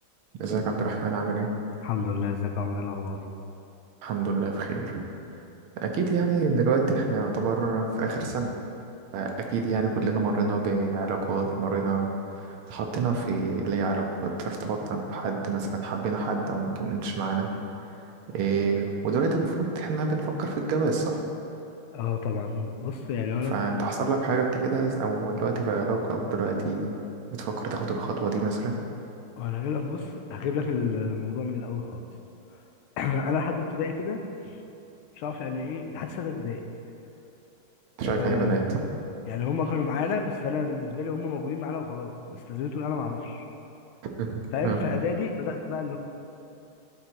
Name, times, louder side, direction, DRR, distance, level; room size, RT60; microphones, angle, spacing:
voice 1, 0.4-1.5 4.0-5.0 5.8-8.5 9.1-12.1 12.4-17.5 18.3-21.2 23.5-26.9 27.3-28.8 38.0-38.8 44.0-44.8, right 4 dB, 90° right, 2 dB, 1.7 m, -27 dB
voice 2, 1.8-3.2 21.9-23.6 29.4-32.0 32.5-32.6 33.0-34.6 35.1-36.6 38.0-38.6 39.3-43.5 44.5-46.0, left 5 dB, 80° left, 5 dB, 1.5 m, -30 dB
11.0 x 3.9 x 4.4 m, 2.8 s
omnidirectional pair, 2.3 m